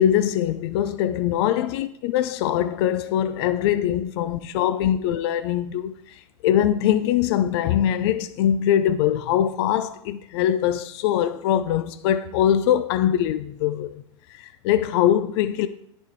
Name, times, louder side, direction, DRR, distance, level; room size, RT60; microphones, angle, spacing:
voice 1, 0.0-5.9 6.4-14.0 14.4-15.7, left 10 dB, 60° left, 0.5 m, -22 dB
10.5 x 4.4 x 4.6 m
hypercardioid pair, 120°, 16 cm